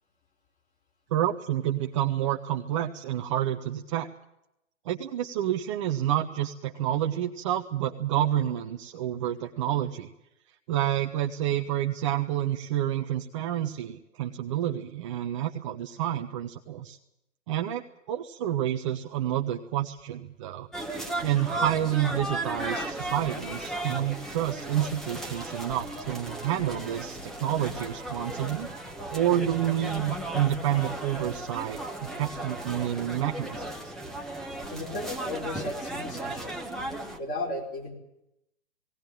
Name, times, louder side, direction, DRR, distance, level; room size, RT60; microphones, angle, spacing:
voice 1, 1.1-4.1 4.9-10.1 10.7-17.0 17.5-20.7 21.2-28.7 29.1-33.9, right 11 dB, 25° right, 3 dB, 0.7 m, -29 dB
sound 1, 20.7-37.2, right 1 dB, ahead, 1.2 m, -35 dB
voice 2, 34.7-36.6 37.2-37.9, left 2 dB, 20° left, 1 dB, 4.5 m, -35 dB
18.5 x 18.5 x 9.1 m, 0.85 s
hypercardioid pair, 140°, 38 cm